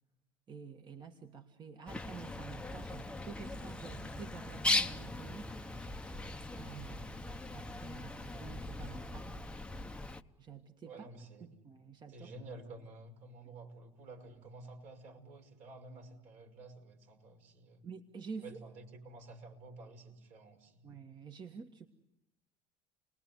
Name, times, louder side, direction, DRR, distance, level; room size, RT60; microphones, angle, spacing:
voice 1, 0.5-5.5 6.5-7.2 7.5-9.3 10.4-11.1 11.4-12.3 17.8-18.6 20.8-21.9, right 5 dB, 35° right, 5 dB, 1.7 m, -49 dB
Bird, 1.9-10.2, left 2 dB, 10° left, 1.0 m, -39 dB
voice 2, 10.8-11.6 12.1-17.8 18.4-21.0, right 2 dB, 65° right, 3 dB, 5.7 m, -51 dB
30.0 x 20.0 x 9.7 m, 0.91 s
supercardioid pair, 100°, 13 cm